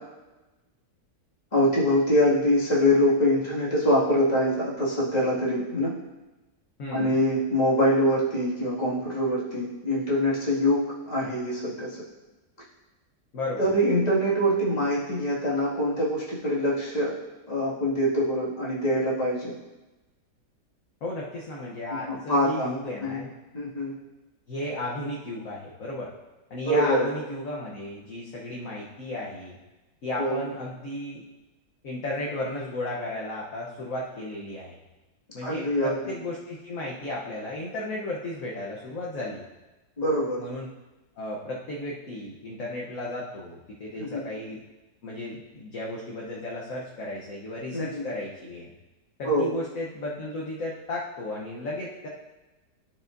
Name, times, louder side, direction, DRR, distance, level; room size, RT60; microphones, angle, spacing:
voice 1, 1.5-5.9 6.9-11.9 13.6-17.1 17.5-19.5 22.1-22.7 23.0-23.2 23.5-23.9 26.6-27.1 30.2-30.4 35.4-35.9 40.0-40.4 44.0-44.2 47.7-48.0 49.3-49.5, equal, 25° left, -7 dB, 2.1 m, -24 dB
voice 2, 6.8-7.2 13.3-13.7 21.0-23.3 24.5-26.1 26.5-29.6 30.0-31.2 31.8-34.7 35.3-39.4 40.4-40.7 41.2-44.6 45.0-48.7 49.2-52.1, left 1 dB, 55° left, -5 dB, 1.3 m, -34 dB
14.0 x 4.8 x 2.6 m, 1.1 s
omnidirectional pair, 1.9 m